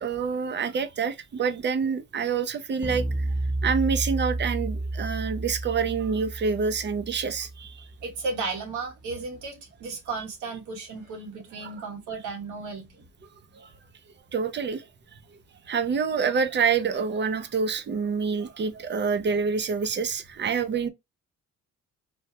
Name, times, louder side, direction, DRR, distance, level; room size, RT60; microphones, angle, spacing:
voice 1, 0.0-3.3 3.6-7.9 11.6-11.7 13.5-13.7 14.3-14.9 15.7-20.9, right 5 dB, 35° right, 0.6 m, -27 dB
sound 1, 2.8-8.2, right 2 dB, 20° left, 1.0 m, -31 dB
voice 2, 8.0-13.0, right 4 dB, 90° right, 1.3 m, -34 dB
3.4 x 2.3 x 2.7 m
cardioid pair, 90°, 30 cm